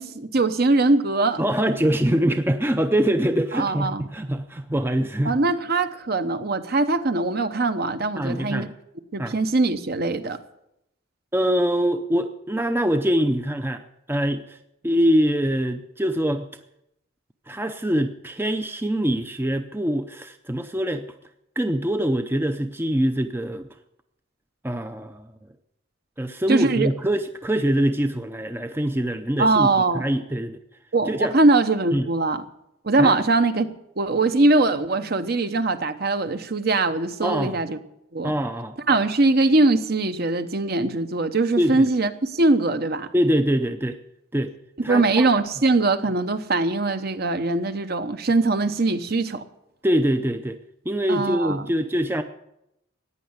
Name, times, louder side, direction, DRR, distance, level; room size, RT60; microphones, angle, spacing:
voice 1, 0.0-1.4 3.5-4.0 5.2-8.7 9.1-10.4 26.5-26.9 29.4-30.0 30.9-32.4 32.8-37.8 38.1-38.3 38.9-43.1 44.9-49.4 51.1-51.6, right 2 dB, 50° right, 10 dB, 0.9 m, -21 dB
voice 2, 1.4-5.4 8.2-8.7 9.2-9.3 11.3-13.8 14.1-14.6 14.8-16.5 17.5-21.1 21.6-23.7 24.6-25.3 26.2-29.7 29.9-30.6 31.1-31.4 31.9-32.1 33.0-33.2 37.2-37.6 38.2-38.8 41.6-41.9 43.1-44.0 44.3-44.5 44.8-45.3 49.8-50.6 50.9-52.2, equal, 10° right, 8 dB, 0.5 m, -24 dB
15.0 x 9.8 x 8.1 m, 0.83 s
head